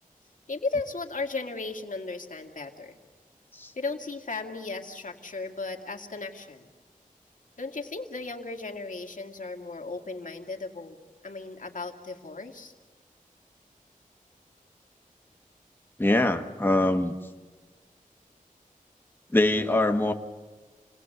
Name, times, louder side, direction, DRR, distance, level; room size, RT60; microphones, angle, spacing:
voice 1, 0.5-3.0 3.8-6.7 7.6-11.0 11.2-12.7, left 3 dB, 65° left, 3 dB, 2.2 m, -35 dB
voice 2, 16.0-17.1 19.3-20.1, left 1 dB, 15° left, 5 dB, 1.2 m, -23 dB
29.0 x 19.0 x 7.9 m, 1.4 s
wide cardioid pair, 90°, 15 cm